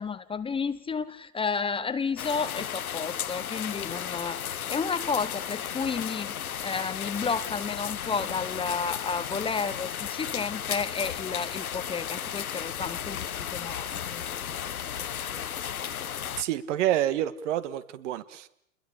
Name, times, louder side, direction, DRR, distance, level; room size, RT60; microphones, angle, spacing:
voice 1, 0.0-4.4 4.7-6.3 6.6-14.6 15.0-15.5, left 5 dB, 15° left, 12 dB, 1.1 m, -32 dB
sound 1, 2.2-16.4, left 9 dB, 85° left, 1.2 m, -34 dB
voice 2, 16.4-18.5, right 12 dB, 60° right, 13 dB, 1.7 m, -28 dB
29.0 x 21.5 x 8.6 m, 0.68 s
hypercardioid pair, 110°, 42 cm